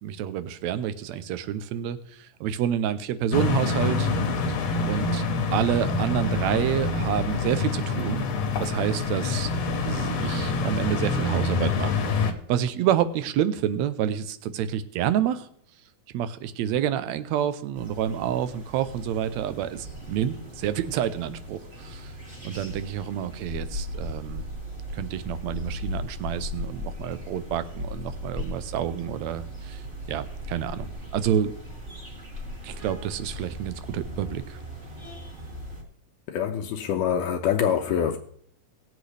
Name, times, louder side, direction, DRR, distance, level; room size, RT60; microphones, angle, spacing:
voice 1, 0.0-4.1 4.9-5.2 5.5-8.3 8.6-9.5 9.8-15.5 16.1-22.1 22.4-24.4 24.9-29.8 30.1-31.5 32.6-34.6, right 10 dB, 75° right, 1.7 m, -28 dB
sound 1, 3.3-12.3, left 3 dB, 65° left, 1.9 m, -26 dB
sound 2, 17.7-35.8, left 1 dB, 20° right, 2.0 m, -38 dB
voice 2, 36.3-38.2, left 8 dB, 80° left, 2.2 m, -25 dB
19.5 x 8.1 x 3.3 m
omnidirectional pair, 3.8 m